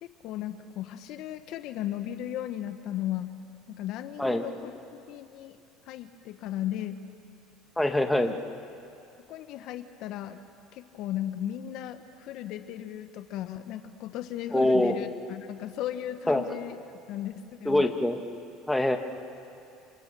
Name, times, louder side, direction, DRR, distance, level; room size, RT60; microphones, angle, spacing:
voice 1, 0.0-3.3 3.7-4.7 5.1-5.6 5.9-7.0 8.1-8.4 9.3-10.4 10.7-16.8 17.1-17.9, left 12 dB, 65° left, 9 dB, 1.2 m, -36 dB
voice 2, 7.8-8.3 14.5-14.9 16.3-16.4 17.7-18.2 18.7-19.0, left 1 dB, 5° left, 5 dB, 2.1 m, -24 dB
29.5 x 25.5 x 7.0 m, 2.6 s
supercardioid pair, 85°, 0 cm